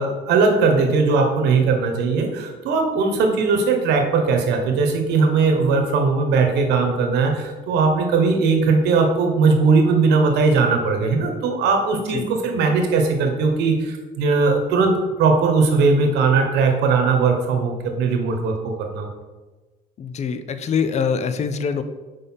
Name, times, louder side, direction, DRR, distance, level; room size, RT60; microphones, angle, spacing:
voice 1, 0.0-19.1, right 4 dB, 85° right, 3 dB, 1.2 m, -19 dB
voice 2, 20.0-21.8, left 6 dB, 40° left, 10 dB, 0.5 m, -24 dB
5.0 x 4.2 x 5.6 m, 1.2 s
cardioid pair, 110°, 17 cm